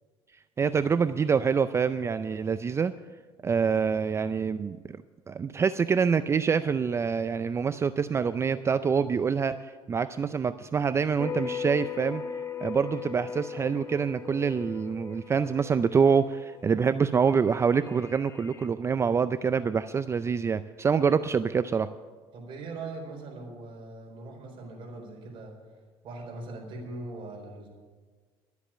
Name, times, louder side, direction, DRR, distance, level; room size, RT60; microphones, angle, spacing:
voice 1, 0.6-2.9 3.4-4.8 5.3-12.2 12.6-21.9, right 6 dB, 25° right, 13 dB, 0.4 m, -26 dB
sound 1, 11.2-18.7, left 6 dB, 25° left, 1.3 m, -39 dB
voice 2, 22.3-25.6 26.0-27.7, right 2 dB, 55° right, 1 dB, 4.3 m, -40 dB
12.5 x 8.2 x 8.6 m, 1.5 s
cardioid pair, 110°, 10 cm